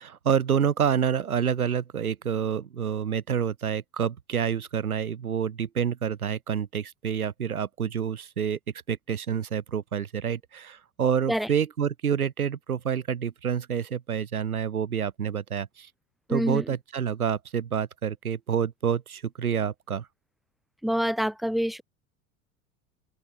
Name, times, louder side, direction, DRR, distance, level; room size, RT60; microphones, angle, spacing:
voice 1, 0.0-8.6 8.9-15.9 16.3-20.1, right 8 dB, 80° right, 1.0 m, -28 dB
voice 2, 16.3-16.6 20.8-21.8, equal, ahead, 1.7 m, -26 dB
figure-of-eight pair, 75°, 43 cm